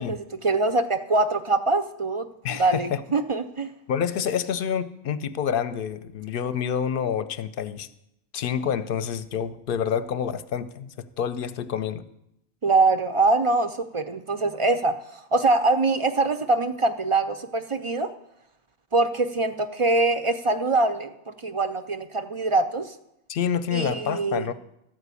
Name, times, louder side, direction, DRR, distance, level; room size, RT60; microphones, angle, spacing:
voice 1, 0.0-3.7 12.6-18.1 18.9-21.1 21.4-22.9 23.7-24.5, right 3 dB, 45° right, 9 dB, 0.4 m, -23 dB
voice 2, 2.4-3.0 3.9-7.9 8.3-12.0 23.3-24.5, left 8 dB, 65° left, 13 dB, 0.7 m, -28 dB
12.5 x 5.0 x 8.2 m, 0.82 s
omnidirectional pair, 1.1 m